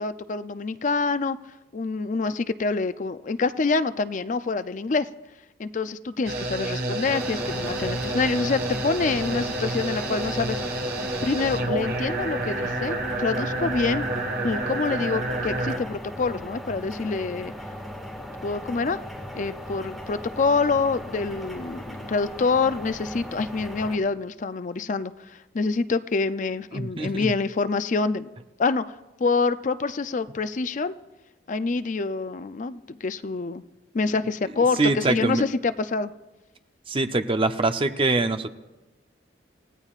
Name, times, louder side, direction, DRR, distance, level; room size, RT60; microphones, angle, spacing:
voice 1, 0.0-1.4 1.7-5.1 5.6-10.8 11.2-14.0 14.4-17.5 18.4-19.0 19.3-28.3 28.6-30.9 31.5-33.6 33.9-36.1, left 4 dB, 45° left, 12 dB, 0.4 m, -26 dB
sound 1, 6.2-15.8, right 2 dB, 60° right, 1.6 m, -29 dB
sound 2, 7.0-23.9, left 1 dB, ahead, 1.8 m, -38 dB
voice 2, 26.7-27.3 34.8-35.4 36.9-38.5, right 2 dB, 30° right, 8 dB, 0.6 m, -24 dB
28.0 x 16.0 x 2.4 m, 1.1 s
head